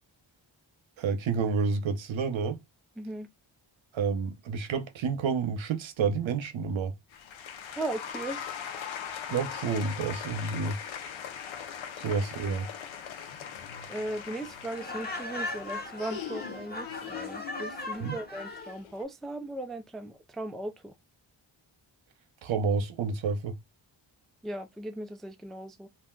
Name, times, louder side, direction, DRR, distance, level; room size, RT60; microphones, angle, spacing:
voice 1, 1.0-2.6 3.9-6.9 9.3-10.8 12.0-12.7 18.0-18.2 22.4-23.6, right 5 dB, 80° right, 0.8 m, -29 dB
voice 2, 3.0-3.3 7.8-8.4 9.7-9.8 12.4-12.5 13.9-20.9 24.4-25.9, right 1 dB, ahead, 0.3 m, -37 dB
sound 1, 7.1-19.0, left 8 dB, 90° left, 0.6 m, -41 dB
Laughter, 14.7-18.8, left 2 dB, 20° left, 0.9 m, -38 dB
2.5 x 2.1 x 3.6 m
cardioid pair, 75°, 46 cm